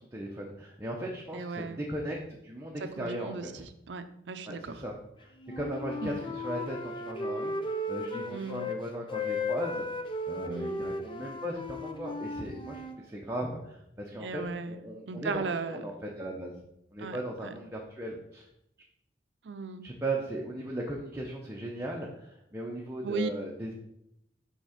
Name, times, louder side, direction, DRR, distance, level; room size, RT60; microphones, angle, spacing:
voice 1, 0.0-3.6 4.5-16.6 16.9-18.4 19.8-23.7, right 1 dB, 15° right, -1 dB, 0.7 m, -37 dB
voice 2, 1.3-1.8 2.8-4.8 6.0-6.2 8.3-8.7 10.5-10.8 14.2-14.8 15.1-15.8 17.0-17.2 19.4-19.9 23.0-23.3, right 4 dB, 80° right, 10 dB, 0.5 m, -36 dB
Wind instrument woodwind instrument, 5.4-8.8 9.1-13.0, left 2 dB, 30° left, 0.6 m, -35 dB
6.1 x 3.6 x 5.7 m, 0.79 s
head